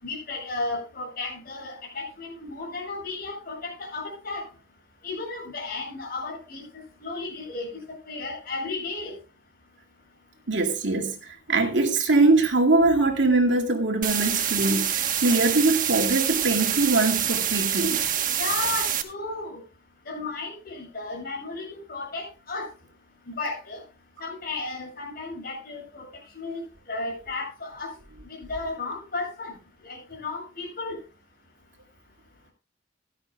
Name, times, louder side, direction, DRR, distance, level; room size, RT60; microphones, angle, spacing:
voice 1, 0.0-4.4 5.0-6.6 7.0-9.1 18.4-19.6 20.1-22.7 23.3-23.8 24.2-26.1 26.3-26.6 26.9-27.9 28.3-29.5 29.8-31.0, left 3 dB, 55° left, 7.6 m, -34 dB
voice 2, 10.5-11.2 11.5-18.0, right 3 dB, 80° right, 2.4 m, -22 dB
sound 1, 14.0-19.0, right 9 dB, 50° right, 1.2 m, -26 dB
16.0 x 12.0 x 2.3 m
head